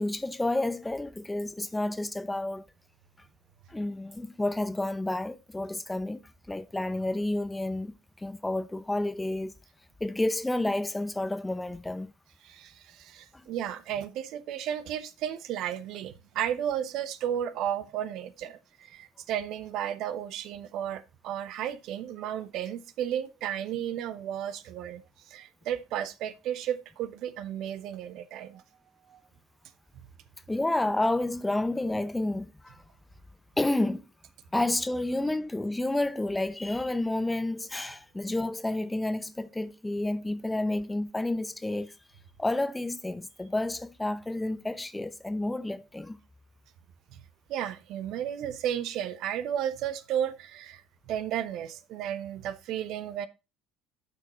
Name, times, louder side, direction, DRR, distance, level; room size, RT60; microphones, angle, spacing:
voice 1, 0.0-2.7 3.7-9.5 10.0-12.1 13.3-13.5 30.5-32.8 33.6-34.1 34.5-42.0 42.4-46.2, left 2 dB, 10° left, 0.7 m, -30 dB
voice 2, 12.4-28.6 29.1-29.2 29.9-30.1 47.1-47.2 47.5-53.3, right 10 dB, 55° right, 0.9 m, -33 dB
12.0 x 5.9 x 2.9 m
figure-of-eight pair, 60°, 0 cm